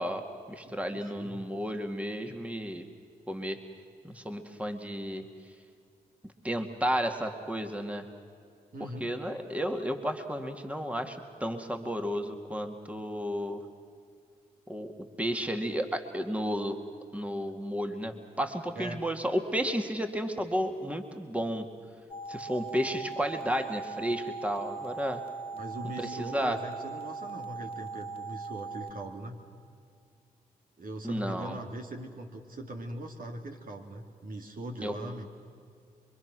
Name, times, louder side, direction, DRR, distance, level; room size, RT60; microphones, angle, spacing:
voice 1, 0.0-2.8 3.3-3.6 4.0-5.3 6.4-8.1 8.8-13.6 14.7-16.8 17.1-21.7 22.3-25.2 26.0-26.6 31.0-31.6 34.8-34.9, equal, 10° right, 5 dB, 2.2 m, -32 dB
voice 2, 0.6-1.5 8.7-9.1 18.7-19.0 25.5-29.4 30.8-35.3, right 1 dB, 60° right, 3 dB, 2.9 m, -41 dB
sound 1, 22.1-28.9, right 4 dB, 35° left, 1.9 m, -40 dB
25.5 x 23.5 x 6.2 m, 2.3 s
supercardioid pair, 50°, 16 cm